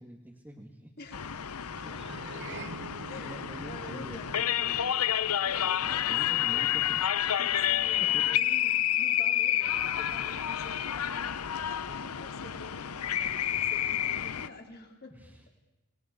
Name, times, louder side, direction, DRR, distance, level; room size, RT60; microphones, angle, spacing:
voice 1, 0.0-0.9 1.4-2.0 3.2-5.0 5.8-7.0 8.0-8.2 15.1-15.5, equal, 10° right, -1 dB, 2.0 m, -46 dB
voice 2, 1.0-1.7 2.0-2.1 3.1-4.5 5.4-6.7 7.4-15.2, left 2 dB, 45° left, 2 dB, 3.7 m, -48 dB
sound 1, 1.1-14.5, left 11 dB, 85° left, 0.8 m, -29 dB
sound 2, 1.7-6.3, right 3 dB, 55° right, 1.2 m, -47 dB
29.0 x 20.0 x 6.8 m, 0.97 s
head